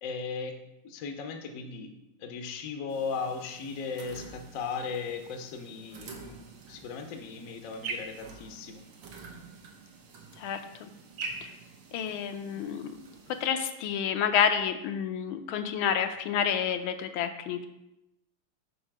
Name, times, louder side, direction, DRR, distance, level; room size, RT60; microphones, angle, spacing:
voice 1, 0.0-1.9 2.2-6.4 6.7-8.8, left 5 dB, 65° left, 5 dB, 0.8 m, -37 dB
sound 1, 2.9-13.5, right 4 dB, 90° right, 1.8 m, -45 dB
voice 2, 10.4-10.9 11.4-11.5 11.9-13.1 13.4-17.7, left 8 dB, 80° left, 7 dB, 1.4 m, -29 dB
5.5 x 4.3 x 5.9 m, 0.89 s
omnidirectional pair, 2.3 m